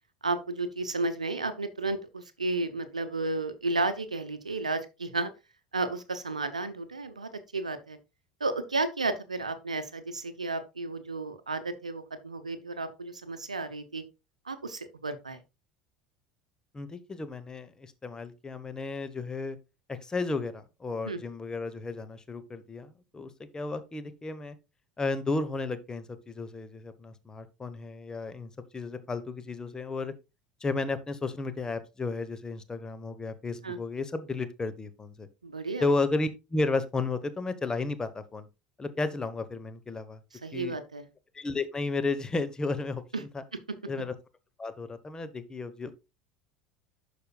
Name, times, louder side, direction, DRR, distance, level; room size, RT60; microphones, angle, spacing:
voice 1, 0.2-5.3 5.7-8.0 8.4-14.0 14.5-15.4 21.0-21.2 33.6-33.8 35.4-35.9 40.4-41.1 43.1-43.2, right 3 dB, 85° right, 0.7 m, -32 dB
voice 2, 16.7-19.6 19.9-24.6 25.0-30.1 30.6-35.3 35.8-38.5 38.8-40.2 40.5-40.8 41.3-43.4 43.9-44.1 44.6-45.9, left 3 dB, 20° left, 1.1 m, -33 dB
11.5 x 5.0 x 2.3 m
figure-of-eight pair, 70°, 4 cm